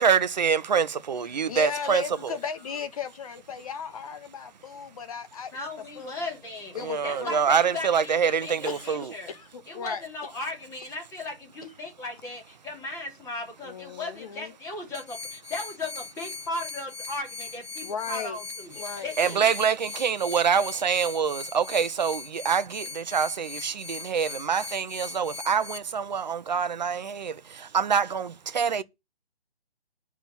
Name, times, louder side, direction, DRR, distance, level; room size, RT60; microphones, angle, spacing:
voice 1, 0.0-2.0 6.8-9.1 19.2-28.8, right 6 dB, 45° right, 1.0 m, -25 dB
voice 2, 1.5-5.7 5.9-6.1 6.7-7.3 8.6-10.0 13.6-14.5 17.8-18.4 18.7-19.1, left 7 dB, 35° left, 1.7 m, -36 dB
voice 3, 5.5-9.3 9.7-18.7 19.0-19.5, left 2 dB, 10° left, 3.1 m, -37 dB
sound 1, 14.9-25.8, left 4 dB, 75° left, 1.6 m, -40 dB
9.1 x 6.1 x 7.2 m
figure-of-eight pair, 145°, 31 cm